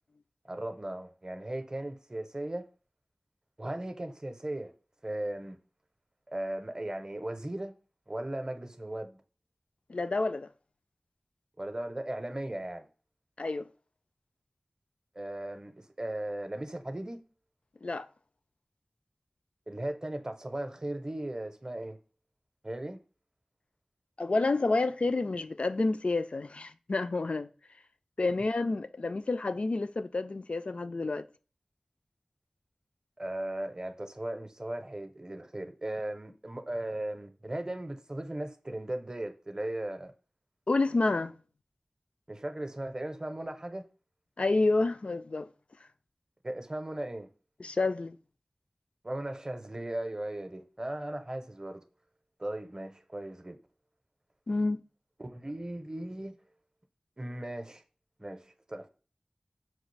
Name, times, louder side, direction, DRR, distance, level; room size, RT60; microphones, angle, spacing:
voice 1, 0.5-2.7 3.6-4.7 5.0-5.6 6.3-7.7 8.1-9.2 11.6-12.9 15.1-17.2 19.7-22.0 22.6-23.0 33.2-40.1 42.3-43.9 46.4-47.3 49.0-51.8 52.4-53.6 55.2-56.4 57.2-57.8 58.2-58.9, right 1 dB, 30° right, 0.6 m, -37 dB
voice 2, 9.9-10.5 13.4-13.7 17.8-18.1 24.2-27.5 28.2-31.3 40.7-41.3 44.4-45.5 47.6-48.2 54.5-54.8, left 3 dB, 60° left, 0.3 m, -29 dB
5.9 x 2.4 x 3.2 m
wide cardioid pair, 60°, 2 cm